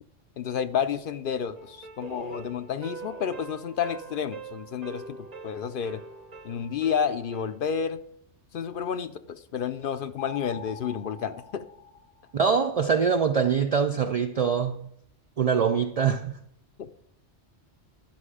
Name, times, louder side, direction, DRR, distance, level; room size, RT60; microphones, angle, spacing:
voice 1, 0.4-5.2 5.4-6.0 6.4-8.0 8.5-11.6 16.8-16.9, left 7 dB, 60° left, 0.6 m, -30 dB
sound 1, 1.5-7.6, right 4 dB, 35° right, 1.1 m, -43 dB
sound 2, 10.2-12.6, left 8 dB, 80° left, 1.1 m, -43 dB
voice 2, 12.3-14.9 15.4-16.4, right 6 dB, 60° right, 0.4 m, -24 dB
12.0 x 5.6 x 4.8 m
omnidirectional pair, 1.2 m